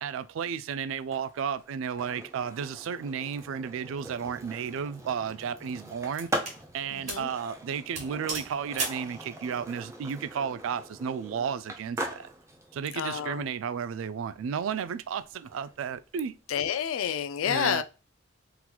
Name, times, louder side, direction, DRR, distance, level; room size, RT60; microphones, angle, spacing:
voice 1, 0.0-6.3 6.7-12.3 12.7-16.4 17.5-17.8, right 7 dB, 75° right, 0.3 m, -33 dB
Skateboard, 1.0-16.8, right 1 dB, 15° right, 0.5 m, -42 dB
sound 1, 4.4-4.7 5.4-6.6 7.1-7.3 7.6-7.7 7.9-9.1, right 3 dB, 35° right, 1.3 m, -36 dB
voice 2, 6.9-7.3 12.9-13.4 16.5-17.8, left 8 dB, 85° left, 0.4 m, -29 dB
3.9 x 2.9 x 2.2 m
head